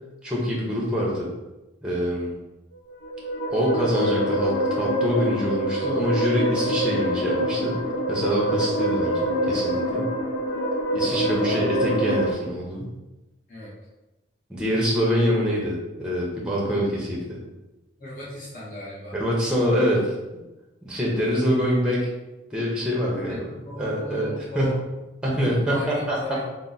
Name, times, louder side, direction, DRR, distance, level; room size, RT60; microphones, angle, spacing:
voice 1, 0.2-1.3 1.8-2.4 3.5-7.8 8.1-10.1 10.9-12.9 14.5-17.4 19.1-20.1 20.8-22.1 22.5-24.8 25.2-26.4, equal, 5° right, -4 dB, 0.7 m, -25 dB
sound 1, 2.9-12.3, right 1 dB, 85° left, 0.5 m, -25 dB
voice 2, 11.3-11.6 13.5-13.7 18.0-19.2 23.2-24.8 25.6-26.5, left 1 dB, 45° left, -7 dB, 1.1 m, -36 dB
3.5 x 2.0 x 4.0 m, 1.0 s
head